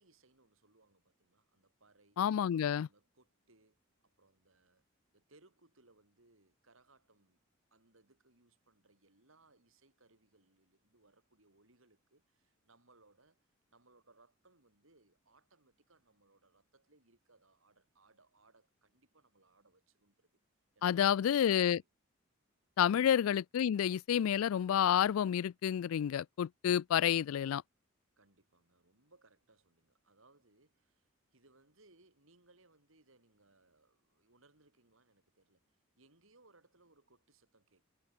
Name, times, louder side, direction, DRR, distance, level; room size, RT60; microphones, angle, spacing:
voice 1, 0.0-2.2 2.5-4.8 5.1-7.4 7.7-20.3 20.7-21.9 23.0-23.2 28.2-37.8, right 2 dB, 75° right, 4.4 m, -68 dB
voice 2, 2.2-2.9 20.8-21.8 22.8-27.6, left 9 dB, 90° left, 0.3 m, -29 dB
head